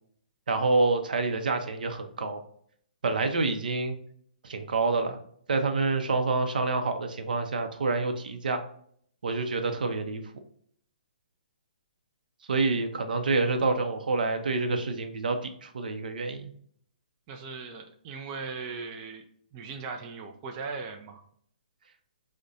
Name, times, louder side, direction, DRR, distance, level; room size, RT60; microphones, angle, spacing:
voice 1, 0.5-2.4 3.0-3.9 4.4-5.2 5.5-8.6 9.2-10.2 12.5-16.5, right 3 dB, 75° right, 6 dB, 0.6 m, -27 dB
voice 2, 17.3-19.2 19.5-21.2, right 4 dB, 25° right, 3 dB, 0.4 m, -38 dB
4.7 x 2.1 x 2.7 m, 0.63 s
hypercardioid pair, 150°, 5 cm